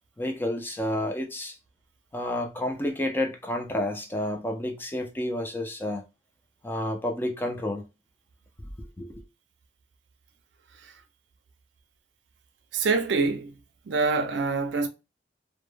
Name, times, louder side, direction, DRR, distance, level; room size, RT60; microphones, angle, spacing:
voice 1, 0.2-1.6 2.1-6.0 6.6-7.9 8.8-9.2, left 1 dB, 10° left, 0.3 m, -30 dB
voice 2, 12.7-13.6 13.9-14.9, right 4 dB, 75° right, 0.5 m, -25 dB
2.1 x 2.1 x 3.1 m
head